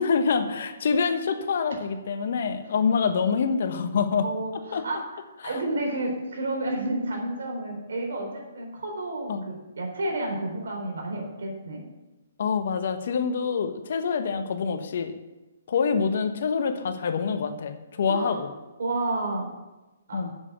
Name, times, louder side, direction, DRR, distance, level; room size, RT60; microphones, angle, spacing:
voice 1, 0.0-4.3 4.7-4.8 5.4-5.6 9.3-9.4 12.4-15.1 15.7-18.5 20.1-20.3, left 5 dB, 60° left, 8 dB, 1.2 m, -26 dB
voice 2, 4.2-11.8 18.1-18.4 18.8-19.5 20.1-20.2, right 2 dB, 70° right, 0 dB, 4.0 m, -31 dB
7.5 x 7.4 x 8.1 m, 1.1 s
hypercardioid pair, 140°, 0 cm